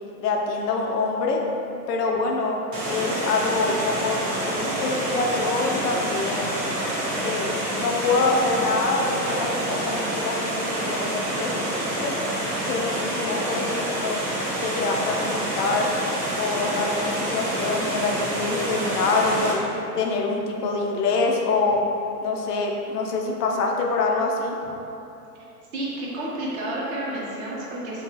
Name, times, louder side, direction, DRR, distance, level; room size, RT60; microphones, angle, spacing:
voice 1, 0.2-1.4 1.9-2.6 2.9-4.2 4.5-6.6 7.2-12.1 12.6-14.2 14.6-15.9 16.4-19.6 20.0-21.8 22.2-24.6, left 3 dB, 75° left, 0 dB, 0.5 m, -25 dB
Water, 2.7-19.5, right 1 dB, 75° right, 1.0 m, -27 dB
voice 2, 12.9-13.7 25.7-28.0, right 1 dB, 45° right, -5 dB, 0.7 m, -32 dB
2.9 x 2.3 x 2.7 m, 2.8 s
hypercardioid pair, 135°, 48 cm